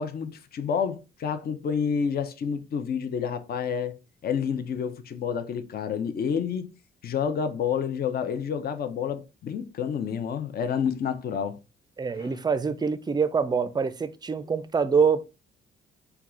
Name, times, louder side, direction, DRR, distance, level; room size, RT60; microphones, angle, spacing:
voice 1, 0.0-3.9 4.2-6.7 7.0-11.6 12.1-12.3, left 7 dB, 50° left, 0.6 m, -29 dB
voice 2, 12.0-15.3, right 6 dB, 20° right, 0.4 m, -25 dB
4.5 x 2.4 x 3.7 m
cardioid pair, 90°, 20 cm